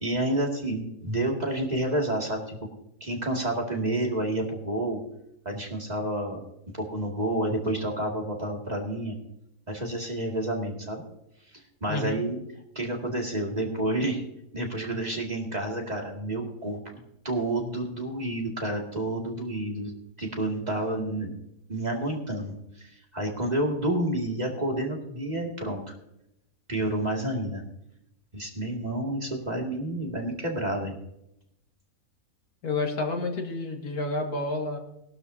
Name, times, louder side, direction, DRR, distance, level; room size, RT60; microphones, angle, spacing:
voice 1, 0.0-2.7 3.0-5.0 5.5-6.4 6.8-9.2 9.7-11.0 11.5-12.4 12.8-14.2 14.5-19.9 20.2-21.3 21.7-25.8 26.7-27.6 28.3-31.0, right 1 dB, 25° right, -1 dB, 2.4 m, -29 dB
voice 2, 11.9-12.2 32.6-34.8, left 2 dB, 85° left, 2 dB, 2.5 m, -29 dB
19.0 x 12.0 x 2.8 m, 0.81 s
omnidirectional pair, 1.6 m